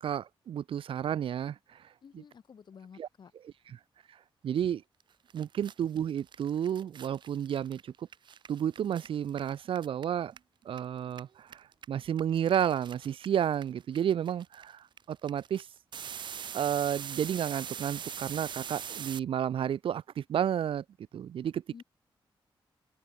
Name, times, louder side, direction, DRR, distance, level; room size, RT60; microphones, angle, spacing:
voice 1, 0.0-2.2 3.0-3.1 3.4-3.8 4.1-4.8 5.3-8.1 8.5-10.3 10.6-15.7 16.5-20.8 21.1-21.8, right 9 dB, 80° right, 1.0 m, -32 dB
voice 2, 2.0-3.3 21.7-21.8, left 6 dB, 55° left, 6.6 m, -51 dB
sound 1, 5.0-5.1 5.3-10.8 11.1-19.2, right 8 dB, 60° right, 0.7 m, -43 dB
open air
wide cardioid pair, 125°, 9 cm